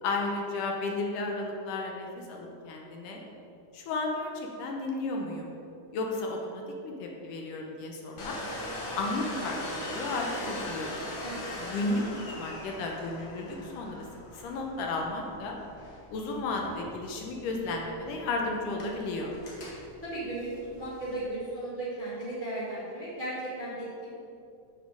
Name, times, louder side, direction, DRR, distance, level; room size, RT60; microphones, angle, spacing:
voice 1, 0.0-3.2 3.7-5.5 5.9-8.4 8.9-10.9 11.6-12.0 12.4-14.0 14.3-15.6 16.1-19.3, left 2 dB, 75° left, 0 dB, 2.4 m, -33 dB
Domestic sounds home sounds, 8.2-21.3, left 1 dB, 50° left, 1.5 m, -41 dB
voice 2, 20.0-20.5 20.8-24.1, right 1 dB, 25° right, -9 dB, 1.1 m, -35 dB
7.4 x 5.8 x 6.2 m, 2.6 s
omnidirectional pair, 3.9 m